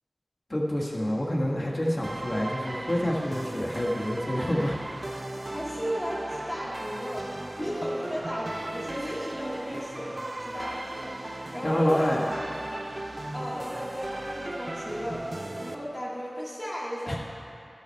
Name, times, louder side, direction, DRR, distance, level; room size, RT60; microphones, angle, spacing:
voice 1, 0.5-4.8 11.6-12.2 17.1-17.2, equal, 55° left, -3 dB, 1.4 m, -27 dB
sound 1, 2.0-15.7, right 1 dB, 55° right, 0.5 m, -36 dB
voice 2, 5.5-7.3 7.6-12.2 13.3-15.3 15.6-17.2, equal, 30° left, -6 dB, 1.2 m, -35 dB
12.0 x 5.7 x 4.5 m, 2.6 s
wide cardioid pair, 45°, 0 cm